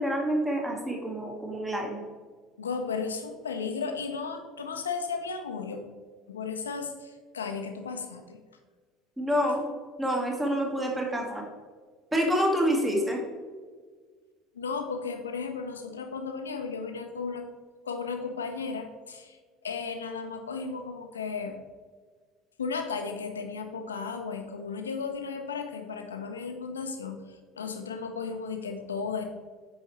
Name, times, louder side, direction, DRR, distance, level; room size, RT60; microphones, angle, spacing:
voice 1, 0.0-2.0 9.2-9.7 10.0-11.4 12.1-13.2, equal, 10° right, 0 dB, 1.6 m, -27 dB
voice 2, 2.6-5.8 6.3-8.4 14.5-17.5 17.8-19.4 19.6-21.6 22.6-29.2, left 5 dB, 75° left, 5 dB, 0.7 m, -34 dB
8.6 x 5.6 x 3.1 m, 1.5 s
figure-of-eight pair, 65°, 0 cm